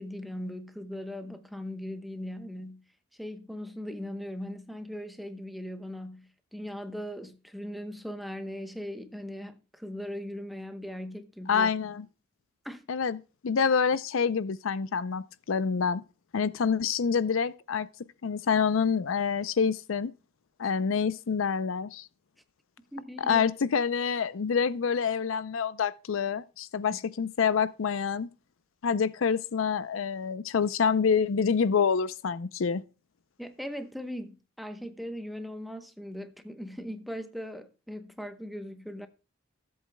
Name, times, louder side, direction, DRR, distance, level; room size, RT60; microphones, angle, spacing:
voice 1, 0.0-2.8 3.2-11.7 12.6-12.9 22.9-23.4 26.9-27.0 33.4-39.1, equal, ahead, 0.9 m, -39 dB
voice 2, 11.5-12.1 12.9-16.0 16.3-17.9 18.2-20.1 20.6-22.1 23.3-28.3 28.8-32.8, left 6 dB, 90° left, 0.5 m, -27 dB
16.5 x 7.9 x 2.2 m
head